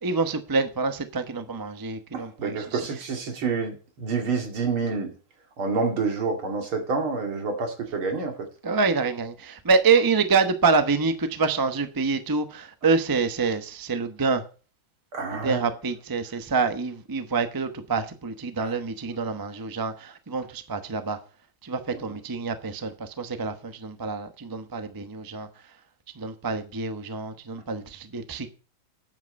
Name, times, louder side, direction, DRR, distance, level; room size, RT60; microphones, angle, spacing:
voice 1, 0.0-2.8 8.6-14.4 15.3-21.2 21.6-25.5 26.2-28.5, right 4 dB, 25° right, 0.4 m, -26 dB
voice 2, 2.1-5.1 5.6-8.4 15.1-15.7 18.6-18.7 21.9-22.0, right 4 dB, 85° right, 3.1 m, -28 dB
9.2 x 7.8 x 5.4 m
omnidirectional pair, 2.3 m